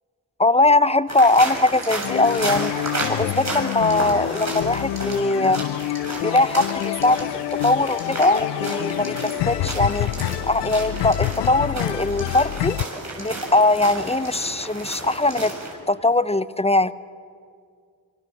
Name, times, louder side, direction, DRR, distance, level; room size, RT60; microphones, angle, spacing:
voice 1, 0.4-5.6 6.2-7.3 7.6-10.1 10.4-12.8 13.2-15.5 15.9-16.9, left 2 dB, 15° left, 16 dB, 0.9 m, -20 dB
sound 1, 1.1-15.7, right 2 dB, 40° right, 7.3 m, -32 dB
sound 2, 2.0-12.9, left 17 dB, 75° left, 0.5 m, -27 dB
24.5 x 24.0 x 7.4 m, 2.2 s
supercardioid pair, 40°, 42 cm